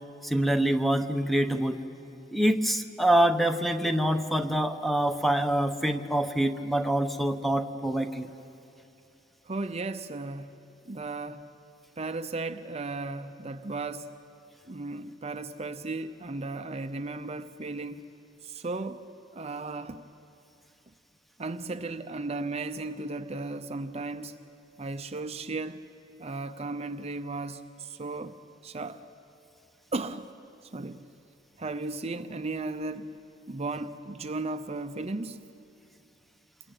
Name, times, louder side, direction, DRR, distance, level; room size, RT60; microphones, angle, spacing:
voice 1, 0.2-1.8 2.3-8.3, right 1 dB, ahead, 0.9 m, -25 dB
voice 2, 9.5-10.5 10.8-11.5 12.0-14.1 14.7-18.1 18.4-19.1 19.3-20.0 21.4-24.3 24.8-25.8 26.2-28.4 28.6-29.0 29.9-30.3 30.7-31.0 31.6-33.1 33.5-35.4, right 3 dB, 35° right, 0.7 m, -35 dB
28.5 x 22.0 x 9.0 m
head